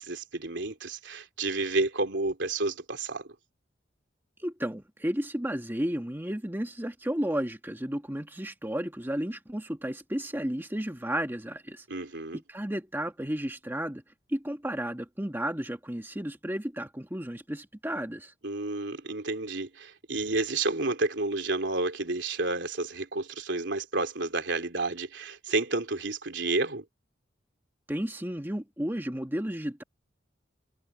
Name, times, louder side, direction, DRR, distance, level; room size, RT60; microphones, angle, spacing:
voice 1, 0.0-3.3 11.9-12.4 18.4-26.8, right 2 dB, 70° right, 3.6 m, -30 dB
voice 2, 4.4-11.9 12.3-14.0 14.3-18.3 27.9-29.8, equal, 10° right, 1.5 m, -33 dB
head